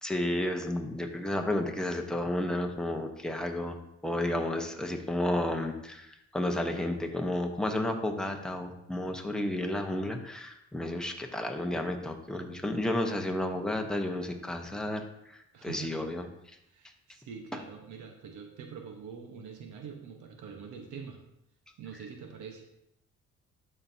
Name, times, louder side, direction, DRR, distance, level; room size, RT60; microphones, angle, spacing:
voice 1, 0.0-3.8 4.0-16.3, left 1 dB, ahead, 3 dB, 0.9 m, -32 dB
voice 2, 15.5-16.0 16.6-21.2 21.8-22.6, right 6 dB, 80° right, 3 dB, 1.1 m, -44 dB
11.5 x 4.3 x 2.7 m, 0.82 s
cardioid pair, 90°, 30 cm